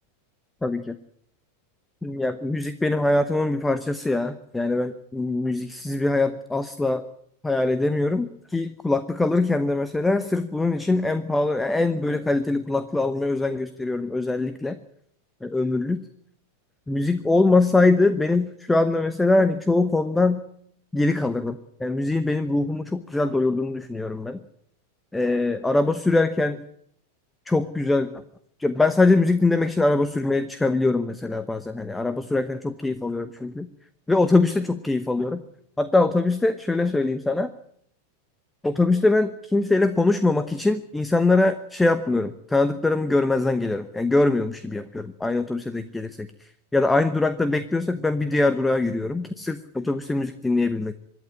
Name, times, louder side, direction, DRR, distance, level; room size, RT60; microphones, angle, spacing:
voice 1, 0.6-0.9 2.0-7.1 7.4-14.8 15.4-16.0 16.9-20.4 20.9-24.4 25.1-26.6 27.5-28.1 28.6-33.7 34.1-35.4 35.8-37.5 38.6-46.3 46.7-50.9, left 2 dB, 5° left, 12 dB, 1.0 m, -23 dB
25.5 x 11.5 x 9.9 m, 0.70 s
figure-of-eight pair, 90°, 0 cm